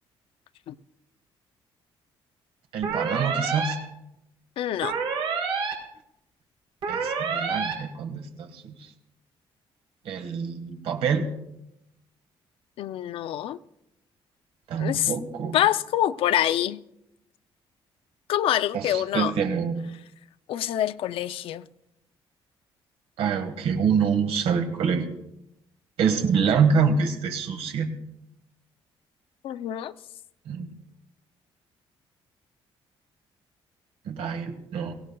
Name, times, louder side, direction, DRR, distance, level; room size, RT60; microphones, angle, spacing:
voice 1, 2.7-3.8 6.9-8.9 10.0-11.3 14.7-15.6 18.7-19.9 23.2-25.1 26.0-27.9 30.4-30.7 34.0-35.0, right 6 dB, 80° right, 1.6 m, -26 dB
sound 1, 2.8-3.7 4.8-5.7 6.8-7.7, right 5 dB, 65° right, 3.6 m, -28 dB
voice 2, 4.6-5.0 12.8-13.6 14.8-15.1 15.5-16.8 18.3-19.3 20.5-21.7 29.4-29.9, left 12 dB, 65° left, 0.5 m, -25 dB
24.0 x 16.5 x 2.3 m
cardioid pair, 175°, 10 cm